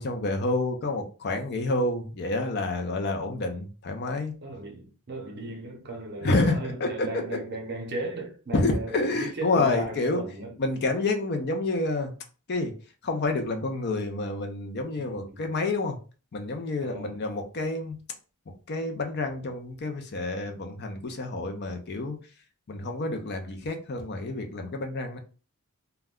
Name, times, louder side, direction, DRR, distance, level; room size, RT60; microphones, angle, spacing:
voice 1, 0.0-4.3 6.2-7.4 8.5-10.2 10.6-12.1 12.5-12.8 13.0-16.0 16.3-18.0 18.7-22.2 22.7-25.2, left 2 dB, 50° left, 0.5 m, -28 dB
voice 2, 4.4-10.5 15.0-15.5 16.8-17.2, right 2 dB, 50° right, 0.7 m, -36 dB
2.2 x 2.1 x 3.5 m
head